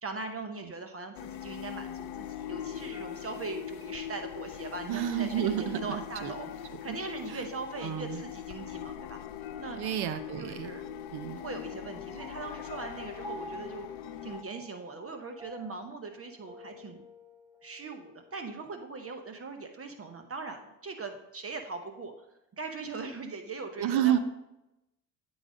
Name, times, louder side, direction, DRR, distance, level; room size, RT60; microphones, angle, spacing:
voice 1, 0.0-6.5 6.8-9.2 9.6-9.8 10.4-10.8 11.3-13.9 14.2-17.0 17.6-22.1 22.6-24.2, right 4 dB, 35° right, 5 dB, 0.9 m, -40 dB
sound 1, 1.1-14.4, left 10 dB, 75° left, 0.6 m, -41 dB
voice 2, 4.9-6.3 6.9-7.0 7.3-7.5 7.8-8.2 9.7-10.7 11.1-11.4 23.8-24.2, right 11 dB, 65° right, 12 dB, 0.7 m, -30 dB
Piano, 12.2-18.9, right 2 dB, 5° right, 0.9 m, -50 dB
9.8 x 4.0 x 5.0 m, 0.90 s
supercardioid pair, 75°, 41 cm